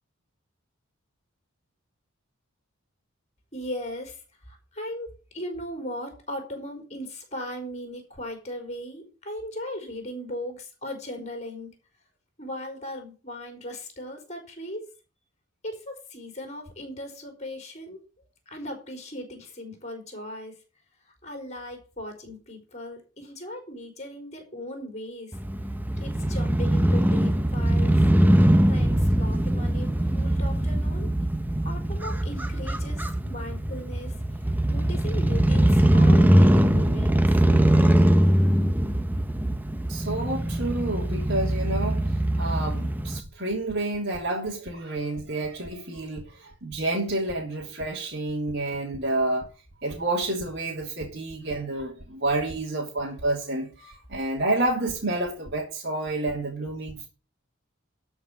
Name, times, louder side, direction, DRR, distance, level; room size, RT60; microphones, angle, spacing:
voice 1, 3.5-4.2 4.5-11.7 12.4-14.9 15.6-20.6 21.2-25.4 26.0-28.0 28.6-31.1 31.6-37.3, left 1 dB, 30° left, 4.3 m, -38 dB
Crow / Motorcycle, 25.3-43.2, right 1 dB, 10° right, 0.7 m, -22 dB
voice 2, 39.9-49.4 49.8-57.1, right 2 dB, 50° right, 3.0 m, -29 dB
12.5 x 5.7 x 7.2 m
head